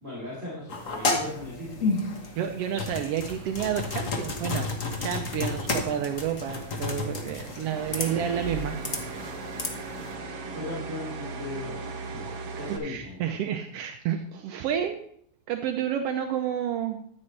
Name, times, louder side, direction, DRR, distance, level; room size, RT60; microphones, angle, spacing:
voice 1, 0.0-1.9 8.0-8.5 10.4-12.2 12.6-13.3, left 1 dB, 25° right, -6 dB, 3.2 m, -38 dB
sound 1, 0.7-10.1, left 3 dB, 75° left, 0.7 m, -32 dB
voice 2, 2.4-4.7 5.0-8.7 12.8-15.1 15.5-17.0, right 9 dB, 85° right, 5 dB, 1.3 m, -30 dB
sound 2, 3.3-12.8, right 4 dB, 55° right, 1.4 m, -40 dB
13.0 x 8.6 x 3.2 m, 0.63 s
omnidirectional pair, 3.5 m